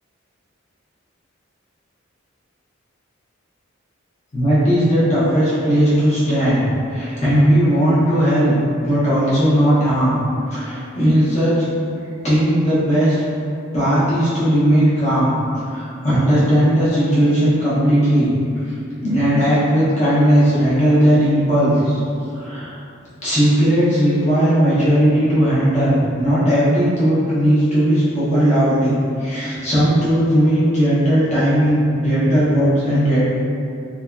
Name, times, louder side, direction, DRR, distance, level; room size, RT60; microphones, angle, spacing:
voice 1, 4.3-10.2 10.5-11.5 12.2-13.2 13.7-15.3 15.7-18.3 18.7-18.8 19.0-22.0 22.3-22.7 23.2-28.9 29.2-33.2, equal, 35° left, -11 dB, 0.8 m, -17 dB
2.5 x 2.1 x 2.3 m, 2.5 s
head